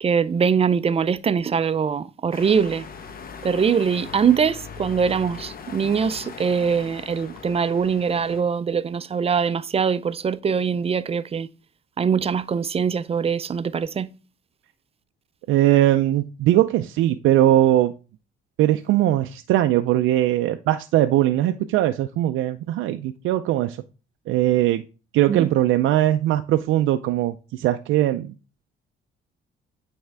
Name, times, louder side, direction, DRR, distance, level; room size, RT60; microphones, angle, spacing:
voice 1, 0.0-2.9 3.4-11.5 12.0-14.1 25.3-25.5, right 6 dB, 30° right, 0.4 m, -22 dB
sound 1, 2.3-8.4, left 6 dB, 50° left, 0.9 m, -39 dB
voice 2, 15.5-17.9 18.6-23.8 24.3-24.8 25.1-28.3, right 13 dB, 90° right, 0.4 m, -20 dB
8.7 x 3.5 x 3.4 m
cardioid pair, 90°, 20 cm